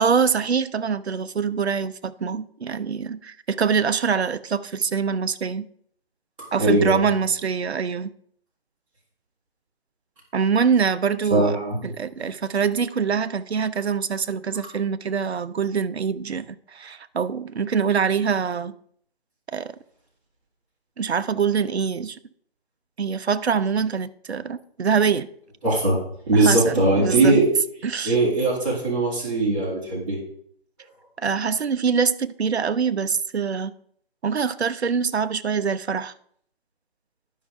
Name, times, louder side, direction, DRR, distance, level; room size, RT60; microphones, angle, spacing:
voice 1, 0.0-5.7 6.5-8.1 10.3-11.6 11.8-18.7 19.5-19.7 21.0-22.2 23.0-25.3 26.3-27.4 27.8-28.2 31.2-33.7 34.2-36.1, right 6 dB, 85° right, 0.6 m, -24 dB
voice 2, 6.6-7.1 11.3-11.8 25.6-26.0 26.3-27.4 28.0-30.2, right 2 dB, 30° right, 2.6 m, -20 dB
11.5 x 5.4 x 3.5 m
figure-of-eight pair, 160°, 32 cm